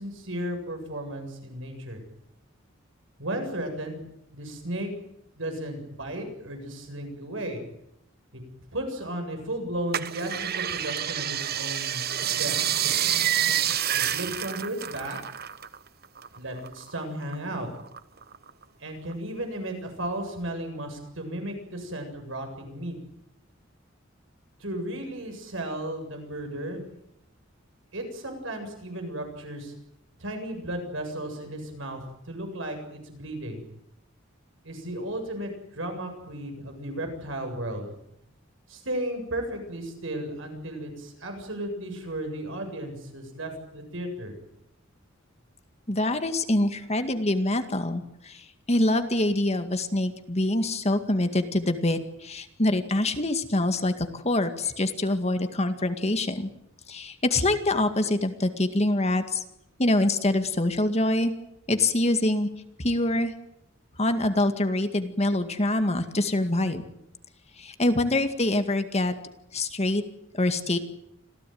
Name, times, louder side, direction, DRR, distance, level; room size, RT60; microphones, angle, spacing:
voice 1, 0.0-2.0 3.2-4.1 4.3-4.9 5.4-7.6 8.3-8.4 8.7-12.6 13.9-15.2 16.4-17.7 18.8-23.0 24.6-26.8 27.9-29.7 30.2-32.0 32.3-33.6 34.6-37.9 38.7-44.4, right 1 dB, 70° right, 5 dB, 7.6 m, -34 dB
sound 1, 9.9-15.8 16.0-17.3 17.8-18.6 19.1-19.2, right 10 dB, 50° right, 1.1 m, -28 dB
voice 2, 45.9-56.5 56.9-59.4 59.8-61.3 61.7-62.5 62.8-63.3 64.0-66.8 67.6-69.2 69.5-70.0 70.3-70.8, left 1 dB, 35° left, 8 dB, 2.1 m, -25 dB
26.5 x 16.5 x 9.5 m, 0.79 s
head